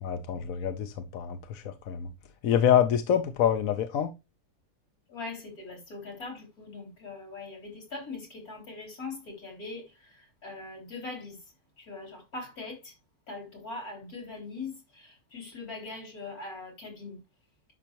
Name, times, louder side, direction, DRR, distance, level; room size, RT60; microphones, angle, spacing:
voice 1, 0.0-2.1 2.4-4.1, left 9 dB, 70° left, 1.2 m, -26 dB
voice 2, 5.1-9.8 10.4-11.4 11.8-12.9 13.3-17.2, left 3 dB, 90° left, 4.1 m, -41 dB
11.5 x 5.8 x 3.0 m
omnidirectional pair, 1.5 m